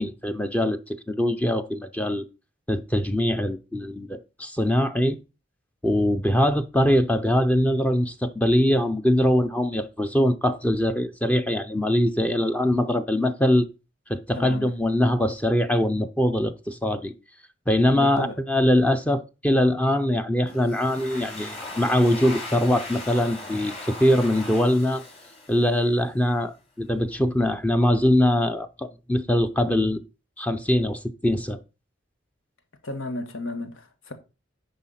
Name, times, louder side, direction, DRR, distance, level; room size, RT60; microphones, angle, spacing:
voice 1, 0.0-2.2 2.7-5.2 5.8-13.7 14.1-17.1 17.7-25.0 25.5-30.0 30.4-31.6, left 1 dB, 5° left, 0.5 m, -22 dB
voice 2, 14.3-14.7 17.9-18.4 32.8-34.1, left 2 dB, 85° left, 1.5 m, -33 dB
Domestic sounds home sounds, 20.5-26.1, left 2 dB, 30° left, 3.7 m, -39 dB
10.5 x 4.1 x 5.6 m
head